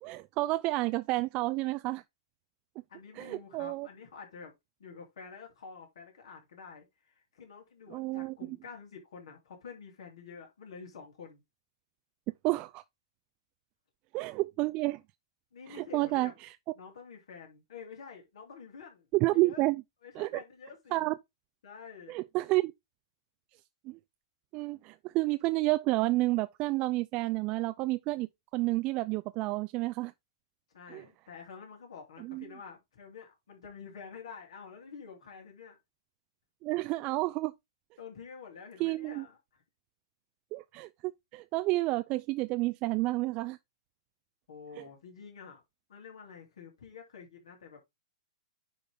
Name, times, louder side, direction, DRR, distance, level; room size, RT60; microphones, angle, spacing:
voice 1, 0.0-2.0 3.2-3.9 7.9-8.3 12.4-12.8 14.1-15.0 15.7-16.5 19.1-19.8 20.2-20.4 20.9-21.2 22.1-22.7 23.9-24.0 24.5-28.3 28.5-30.1 30.9-31.0 32.2-32.4 36.6-37.5 38.8-39.2 40.5-43.6 44.8-44.9, right 20 dB, 35° right, 0.4 m, -30 dB
voice 2, 2.9-4.5 4.8-11.4 15.5-16.3 16.7-19.1 19.3-19.6 20.0-21.1 21.6-22.2 30.7-35.8 38.0-39.6 44.5-45.6 45.9-47.8, left 6 dB, 70° left, 3.2 m, -48 dB
9.7 x 3.9 x 3.5 m
hypercardioid pair, 125°, 3 cm